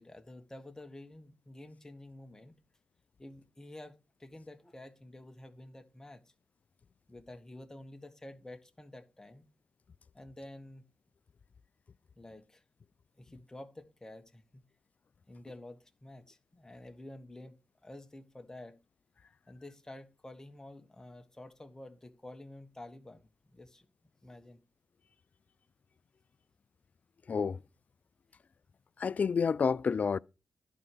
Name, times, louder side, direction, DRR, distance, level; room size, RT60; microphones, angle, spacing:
voice 1, 0.0-2.5 3.2-6.3 7.1-9.4 10.1-10.8 12.2-12.6 13.2-14.6 15.3-18.8 19.5-23.9 24.2-24.6, left 1 dB, 20° left, 1.6 m, -50 dB
voice 2, 27.3-27.6 29.0-30.2, left 6 dB, 55° left, 0.4 m, -29 dB
11.0 x 4.7 x 6.9 m
cardioid pair, 55°, 3 cm